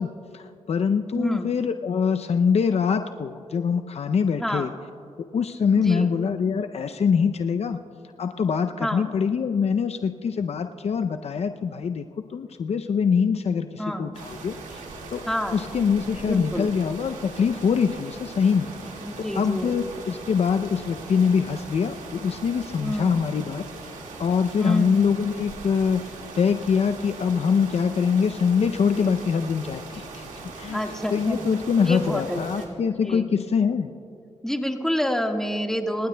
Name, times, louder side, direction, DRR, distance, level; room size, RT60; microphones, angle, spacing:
voice 1, 0.0-4.7 5.3-7.8 8.2-12.1 12.3-14.8 15.1-15.2 15.5-18.7 19.3-23.6 24.2-30.2 30.6-30.8 31.1-33.9, left 6 dB, 55° left, 8 dB, 0.5 m, -24 dB
voice 2, 1.1-1.5 4.4-4.7 5.8-6.1 8.8-9.0 13.8-14.1 15.3-15.6 16.2-16.7 19.0-19.8 22.8-23.2 24.6-25.1 28.8-29.2 30.7-31.4 31.8-32.8 33.0-33.3 34.4-36.1, equal, 5° left, 3 dB, 1.6 m, -28 dB
sound 1, 14.1-32.7, right 3 dB, 85° right, 2.0 m, -40 dB
27.0 x 15.5 x 2.2 m, 2.5 s
supercardioid pair, 50°, 13 cm